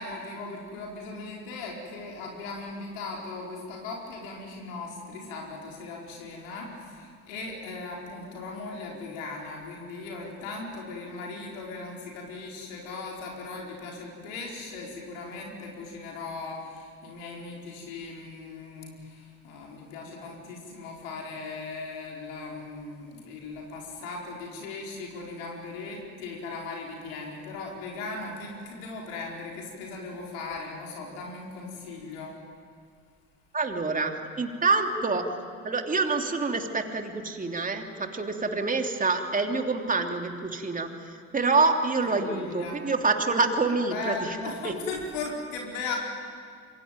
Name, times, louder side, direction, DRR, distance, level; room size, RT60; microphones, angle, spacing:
voice 1, 0.0-32.3 42.0-43.0 43.8-46.0, left 3 dB, 65° left, -1 dB, 4.8 m, -38 dB
voice 2, 33.5-35.3 35.6-44.7, right 3 dB, 20° right, 4 dB, 3.1 m, -27 dB
27.0 x 23.5 x 9.2 m, 2.2 s
figure-of-eight pair, 60°, 42 cm